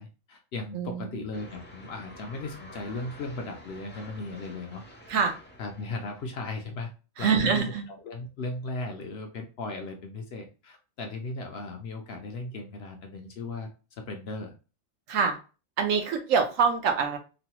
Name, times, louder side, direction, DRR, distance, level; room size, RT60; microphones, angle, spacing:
voice 1, 0.0-4.8 5.6-6.9 7.2-7.6 8.0-14.5, left 2 dB, 65° left, 3 dB, 0.7 m, -37 dB
voice 2, 0.7-1.2 5.1-5.3 7.2-7.8 15.1-15.4 15.8-17.2, right 6 dB, 80° right, 5 dB, 1.0 m, -25 dB
sound 1, 1.3-6.4, left 1 dB, 15° left, 0.3 m, -49 dB
3.1 x 2.1 x 2.8 m, 0.33 s
omnidirectional pair, 1.4 m